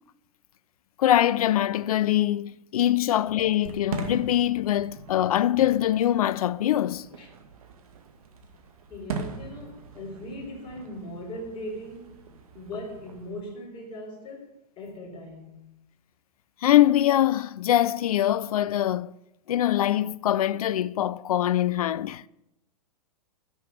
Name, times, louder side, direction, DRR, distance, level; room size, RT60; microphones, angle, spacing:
voice 1, 1.0-7.1 16.6-19.1 19.5-22.2, left 12 dB, 65° left, 0.5 m, -23 dB
Fireworks, 3.5-13.4, right 4 dB, 60° right, 2.1 m, -41 dB
voice 2, 8.9-12.3 12.5-15.6, left 1 dB, 25° left, 4.2 m, -39 dB
10.0 x 6.9 x 9.1 m
hypercardioid pair, 115°, 20 cm